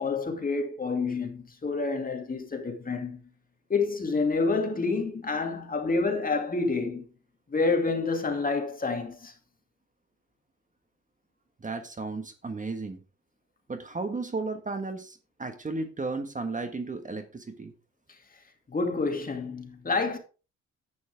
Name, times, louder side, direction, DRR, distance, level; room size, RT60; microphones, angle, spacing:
voice 1, 0.0-3.2 3.7-7.0 7.5-9.3 18.7-20.2, left 4 dB, 30° left, 2.4 m, -28 dB
voice 2, 11.6-13.0 13.7-17.7, right 3 dB, 25° right, 1.5 m, -34 dB
10.5 x 9.4 x 3.5 m
cardioid pair, 90°, 30 cm